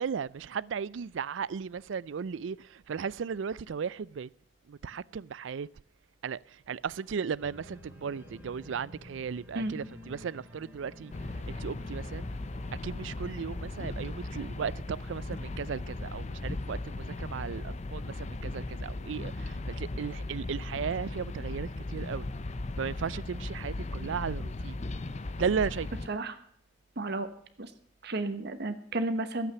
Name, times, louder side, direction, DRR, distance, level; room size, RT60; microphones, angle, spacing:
voice 1, 0.0-4.3 4.7-5.7 6.2-11.1 11.5-12.3 12.8-22.3 22.8-24.8 25.4-25.9, right 6 dB, 80° right, 0.4 m, -35 dB
Organ, 7.4-12.8, left 1 dB, 10° right, 3.0 m, -50 dB
sound 1, 11.1-26.1, left 2 dB, 35° left, 0.6 m, -37 dB
voice 2, 27.0-27.3 27.6-27.7 28.0-29.5, right 2 dB, 60° right, 1.2 m, -32 dB
12.5 x 8.5 x 6.8 m
head